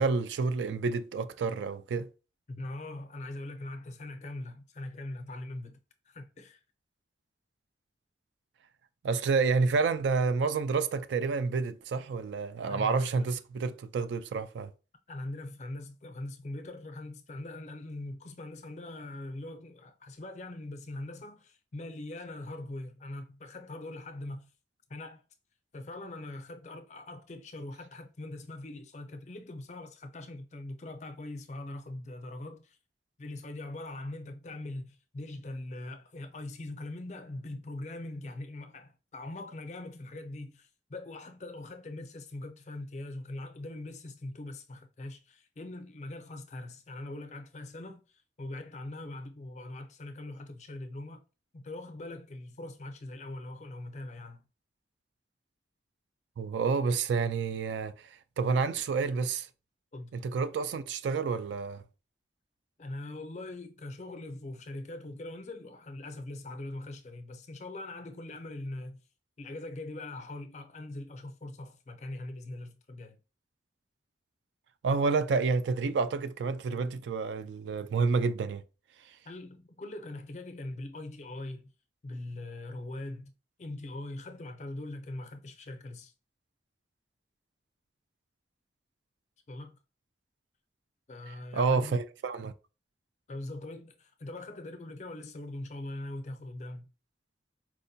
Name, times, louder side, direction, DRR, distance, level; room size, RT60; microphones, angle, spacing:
voice 1, 0.0-2.1 9.0-14.7 56.4-57.9 58.4-59.5 60.1-61.8 74.8-78.6 91.5-92.5, right 4 dB, 85° right, 0.3 m, -29 dB
voice 2, 2.5-5.8 6.1-6.6 12.7-13.3 15.1-24.5 24.9-25.2 25.7-32.8 33.2-51.2 51.5-54.4 59.9-60.2 62.8-69.0 69.4-73.2 79.2-81.7 82.0-83.3 83.6-86.1 89.5-89.8 91.1-92.0 93.3-96.9, left 2 dB, 40° left, 0.4 m, -42 dB
4.5 x 2.1 x 2.6 m
head